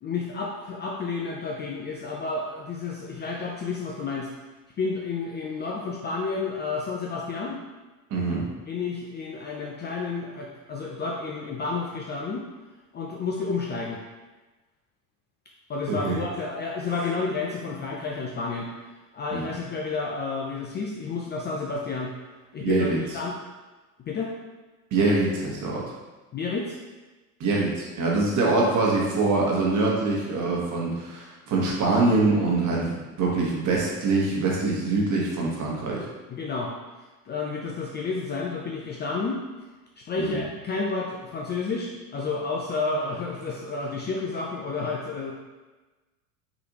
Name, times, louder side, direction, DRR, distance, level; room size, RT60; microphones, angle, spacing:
voice 1, 0.0-4.3 4.8-7.6 8.7-12.5 12.9-14.0 15.7-18.7 19.1-22.1 22.5-22.9 23.1-23.4 24.1-24.3 26.3-26.8 36.3-36.7 37.3-39.4 40.0-45.3, left 4 dB, 25° left, -1 dB, 0.4 m, -30 dB
voice 2, 8.1-8.5 15.9-16.2 19.3-19.5 22.6-23.0 24.9-25.8 27.4-36.0 40.2-40.4, right 3 dB, 40° right, -3 dB, 1.3 m, -24 dB
4.0 x 3.2 x 2.9 m, 1.2 s
hypercardioid pair, 85°, 44 cm